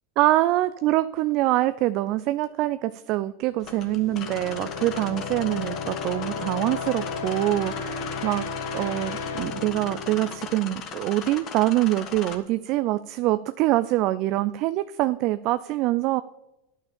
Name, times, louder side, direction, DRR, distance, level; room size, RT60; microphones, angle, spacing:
voice 1, 0.2-7.9 8.2-8.5 8.7-16.2, right 16 dB, 50° right, 13 dB, 0.4 m, -24 dB
sound 1, 3.5-11.2, left 5 dB, 65° left, 1.2 m, -34 dB
sound 2, 3.6-12.4, left 7 dB, 40° left, 1.5 m, -39 dB
9.9 x 5.7 x 6.9 m, 0.92 s
hypercardioid pair, 105°, 0 cm